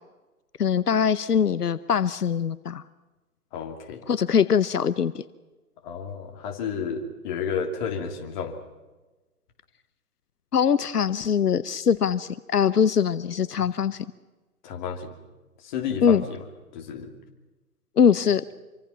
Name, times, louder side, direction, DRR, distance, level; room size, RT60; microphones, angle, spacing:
voice 1, 0.6-2.8 4.1-5.2 10.5-14.0 16.0-16.2 18.0-18.4, left 7 dB, 85° left, 16 dB, 0.9 m, -22 dB
voice 2, 3.5-4.0 5.8-8.6 14.6-15.2 15.6-16.4 16.7-17.1, left 6 dB, 30° left, 3 dB, 3.0 m, -31 dB
27.0 x 24.5 x 5.8 m, 1.2 s
hypercardioid pair, 145°, 46 cm